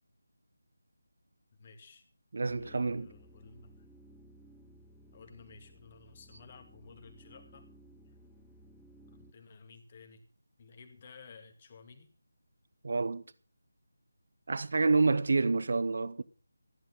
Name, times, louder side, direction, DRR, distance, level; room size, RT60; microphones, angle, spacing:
voice 1, 1.6-2.1 2.6-3.9 5.1-7.7 9.1-10.2 10.6-12.1, left 4 dB, 30° left, 2.3 m, -54 dB
voice 2, 2.3-3.1 12.8-13.2 14.5-16.2, right 3 dB, 50° right, 0.8 m, -28 dB
sound 1, 2.5-9.3, right 1 dB, 5° left, 1.1 m, -58 dB
14.5 x 11.0 x 5.7 m
figure-of-eight pair, 160°, 0 cm